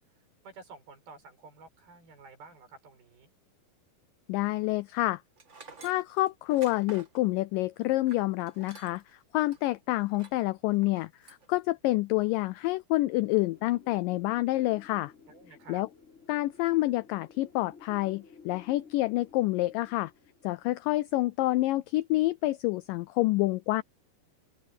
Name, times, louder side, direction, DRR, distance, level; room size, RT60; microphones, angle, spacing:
voice 1, 0.4-3.3 15.3-15.8, right 4 dB, 75° right, 7.6 m, -51 dB
voice 2, 4.3-5.2 5.8-9.0 9.3-15.1 15.7-15.9 16.3-20.1 20.4-23.8, left 18 dB, 90° left, 1.9 m, -28 dB
Tools, 5.4-9.1 9.5-9.6 10.1-10.5 10.8-11.5, right 4 dB, 55° right, 0.8 m, -51 dB
Wind, 13.1-21.8, left 6 dB, 20° left, 3.7 m, -55 dB
open air
omnidirectional pair, 4.4 m